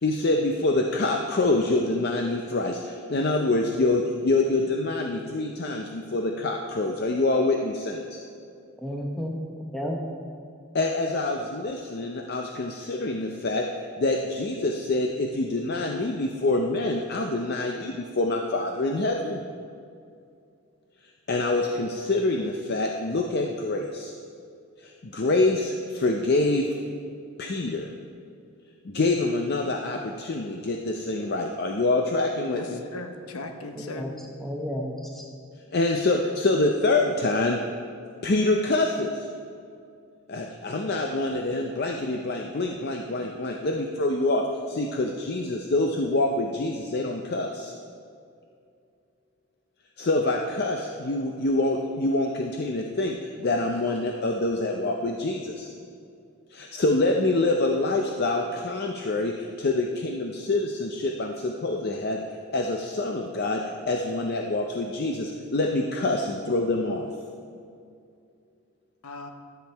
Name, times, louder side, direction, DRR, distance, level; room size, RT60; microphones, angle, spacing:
voice 1, 0.0-8.2 10.7-19.4 21.3-24.1 24.8-26.7 27.4-27.9 28.8-32.8 35.7-37.6 38.2-39.3 40.3-47.7 50.0-55.7 56.5-62.2 62.5-63.6 63.9-67.1, left 2 dB, 45° left, 0.5 m, -26 dB
voice 2, 8.8-9.4 9.7-10.0 33.8-34.1 34.4-35.3, equal, ahead, 0.9 m, -32 dB
voice 3, 32.4-34.2 69.0-69.3, left 2 dB, 80° left, 0.9 m, -38 dB
12.5 x 7.3 x 4.5 m
head